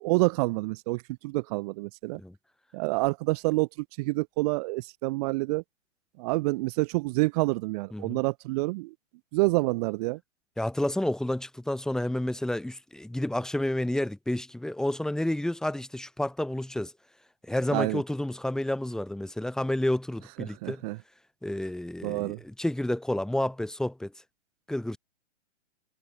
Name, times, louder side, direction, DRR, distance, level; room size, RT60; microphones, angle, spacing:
voice 1, 0.0-2.2 2.7-3.7 4.0-5.6 6.2-8.9 9.3-10.2 17.7-18.0 20.4-21.0 22.0-22.4, right 23 dB, 30° right, 4.3 m, -28 dB
voice 2, 10.6-16.9 17.4-20.8 21.4-24.1 24.7-25.0, left 1 dB, ahead, 6.4 m, -30 dB
figure-of-eight pair, 125°, 39 cm